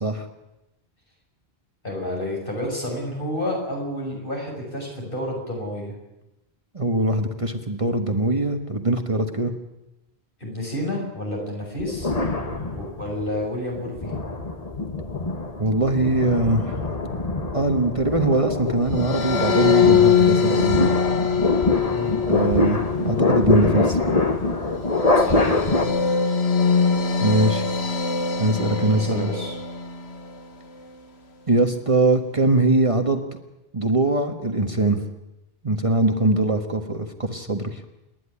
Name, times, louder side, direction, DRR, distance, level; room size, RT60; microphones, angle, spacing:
voice 1, 1.8-5.9 10.4-12.1 12.7-14.1 21.9-22.2 25.1-25.6 28.9-29.6, left 1 dB, 55° left, 0 dB, 6.6 m, -30 dB
voice 2, 6.7-9.5 15.6-16.8 17.5-20.9 22.2-24.0 27.2-27.6 28.4-29.3 31.5-33.2 33.7-35.0 35.6-37.8, right 2 dB, 30° right, 5 dB, 1.4 m, -22 dB
sound 1, 11.8-13.2 13.8-25.8, left 2 dB, 35° left, 1.6 m, -24 dB
sound 2, 18.9-30.3, left 6 dB, 85° left, 1.8 m, -23 dB
28.0 x 11.0 x 9.9 m, 0.94 s
omnidirectional pair, 1.1 m